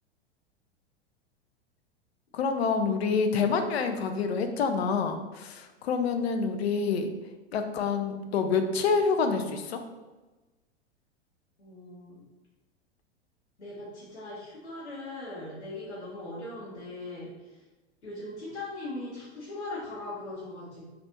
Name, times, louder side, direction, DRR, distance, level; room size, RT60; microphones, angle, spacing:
voice 1, 2.3-7.1 7.5-9.8, left 5 dB, 65° left, 7 dB, 0.5 m, -27 dB
voice 2, 11.6-12.2 13.6-17.3 18.0-20.9, left 2 dB, 85° left, -8 dB, 1.0 m, -39 dB
3.3 x 2.4 x 2.8 m, 1.2 s
figure-of-eight pair, 95°, 34 cm